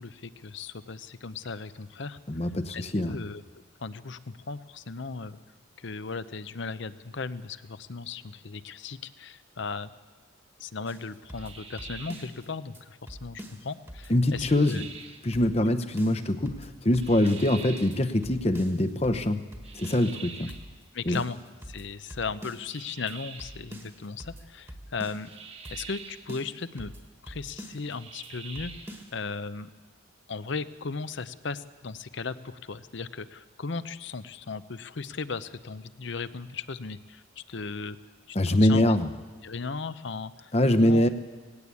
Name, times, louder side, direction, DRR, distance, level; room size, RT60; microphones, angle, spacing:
voice 1, 0.0-2.2 2.7-5.4 5.8-9.9 10.6-14.8 15.6-15.7 20.9-21.4 21.7-25.3 25.7-26.9 27.2-29.7 30.3-38.0 38.3-39.0 39.4-41.1, left 4 dB, 60° left, 14 dB, 0.7 m, -37 dB
voice 2, 2.3-3.2 14.1-14.9 15.2-20.5 21.1-21.2 38.3-39.1 40.5-41.1, left 1 dB, 30° left, 9 dB, 0.9 m, -24 dB
sound 1, 10.9-12.5 12.7-12.8 13.1-15.0 15.3-15.7 16.0-17.6 17.9-18.0 18.2-20.2 20.5-20.8 21.1-22.8 23.1-23.2 23.4-25.4 25.6-26.0 26.3-27.9 28.2-28.3 28.5-29.1, equal, 10° right, 1.5 m, -45 dB
sound 2, 11.3-12.4 14.3-15.3 17.0-18.0 19.6-20.7 22.6-23.6 25.2-26.3 27.9-29.0, right 5 dB, 30° right, 1.2 m, -45 dB
18.5 x 16.5 x 8.4 m, 1.4 s
head